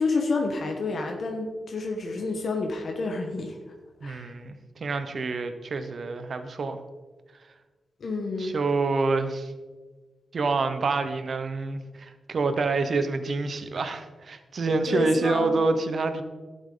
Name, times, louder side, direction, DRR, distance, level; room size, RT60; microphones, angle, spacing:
voice 1, 0.0-3.6 4.0-4.3 8.0-8.5 14.7-15.5, left 3 dB, 65° left, 2 dB, 1.2 m, -29 dB
voice 2, 4.0-6.8 8.4-9.5 10.3-16.2, right 3 dB, 55° right, 9 dB, 0.9 m, -27 dB
11.5 x 8.0 x 3.9 m, 1.3 s
cardioid pair, 85°, 0 cm